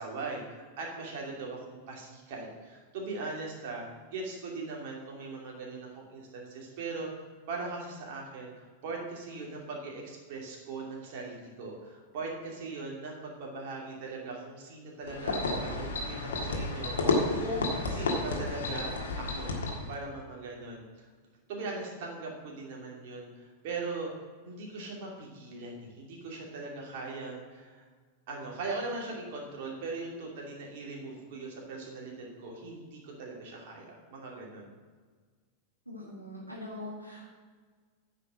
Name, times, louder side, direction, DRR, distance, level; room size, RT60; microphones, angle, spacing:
voice 1, 0.0-3.8 4.1-8.5 8.8-19.5 19.9-21.1 21.5-24.1 24.4-27.8 28.3-34.7, right 3 dB, 50° right, -1 dB, 2.6 m, -40 dB
sound 1, 15.1-19.9, left 3 dB, 65° left, 1.6 m, -31 dB
voice 2, 35.9-37.4, left 1 dB, 90° right, -4 dB, 2.1 m, -42 dB
9.6 x 5.7 x 7.5 m, 1.5 s
figure-of-eight pair, 90°, 0 cm